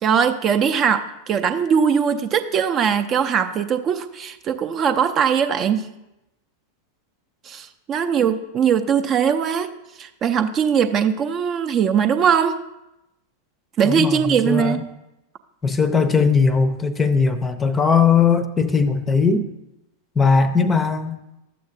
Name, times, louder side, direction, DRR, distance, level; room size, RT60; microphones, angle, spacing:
voice 1, 0.0-5.9 7.4-9.7 10.0-12.6 13.8-14.8, right 7 dB, 30° right, 9 dB, 0.5 m, -20 dB
voice 2, 13.8-14.8 15.6-19.5 20.2-21.2, left 5 dB, 15° left, 12 dB, 0.6 m, -19 dB
12.5 x 7.6 x 2.6 m, 0.91 s
figure-of-eight pair, 90°, 0 cm